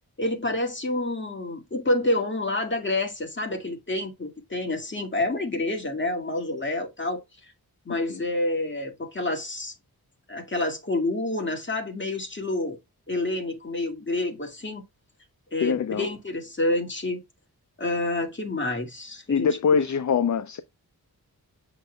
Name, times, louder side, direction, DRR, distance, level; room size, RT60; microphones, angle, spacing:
voice 1, 0.2-7.5 7.9-9.7 10.3-12.8 13.1-14.8 15.5-17.2 17.8-19.6, left 2 dB, 30° left, 2.1 m, -28 dB
voice 2, 7.9-8.2 15.6-16.1 19.3-20.6, left 6 dB, 50° left, 0.5 m, -24 dB
7.7 x 6.0 x 2.2 m
wide cardioid pair, 110°, 37 cm